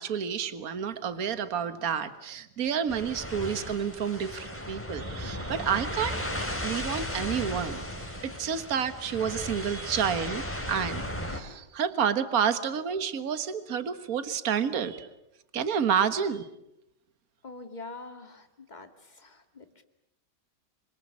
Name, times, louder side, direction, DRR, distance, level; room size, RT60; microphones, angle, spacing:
voice 1, 0.0-6.2 6.6-10.4 10.7-15.1 15.5-16.5, right 7 dB, 55° right, 11 dB, 1.8 m, -29 dB
sound 1, 2.9-11.4, left 1 dB, 5° left, 2.8 m, -35 dB
voice 2, 17.4-19.8, left 3 dB, 25° left, 7 dB, 2.3 m, -45 dB
26.5 x 25.5 x 8.7 m, 0.85 s
omnidirectional pair, 1.9 m